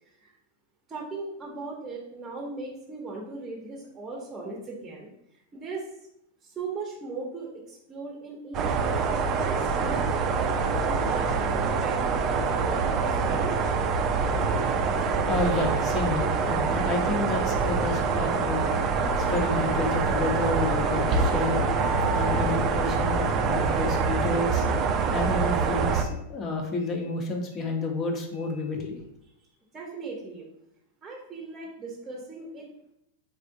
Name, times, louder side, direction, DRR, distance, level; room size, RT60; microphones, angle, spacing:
voice 1, 0.9-5.1 5.5-5.9 6.4-9.0 9.4-13.5 29.4-29.5 29.7-30.4 31.0-32.7, right 3 dB, 20° right, -1 dB, 0.8 m, -38 dB
sound 1, 8.5-26.0, right 5 dB, 35° right, 0.4 m, -25 dB
voice 2, 14.8-29.1, left 3 dB, 35° left, 2 dB, 0.9 m, -31 dB
sound 2, 18.6-23.7, left 3 dB, 65° left, 0.9 m, -38 dB
3.7 x 3.4 x 2.6 m, 0.77 s
hypercardioid pair, 115°, 0 cm